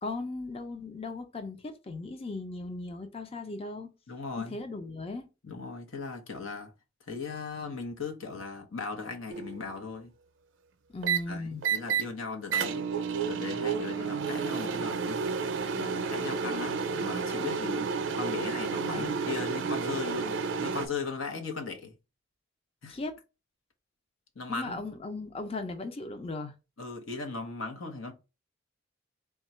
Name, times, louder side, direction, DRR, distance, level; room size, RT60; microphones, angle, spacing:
voice 1, 0.0-3.9 4.4-5.3 10.9-11.6 18.9-19.2 22.9-23.1 24.5-26.5, left 3 dB, 30° left, 0.5 m, -37 dB
voice 2, 4.1-4.6 5.4-6.7 7.1-10.1 11.3-12.9 13.3-15.2 15.8-17.9 18.2-22.0 22.8-23.0 24.3-24.8 26.8-28.1, left 4 dB, 90° left, 0.9 m, -38 dB
sound 1, 9.3-9.6 11.0-11.2 11.6-12.0 12.5-20.9, right 5 dB, 65° right, 0.5 m, -31 dB
3.6 x 2.3 x 4.2 m
head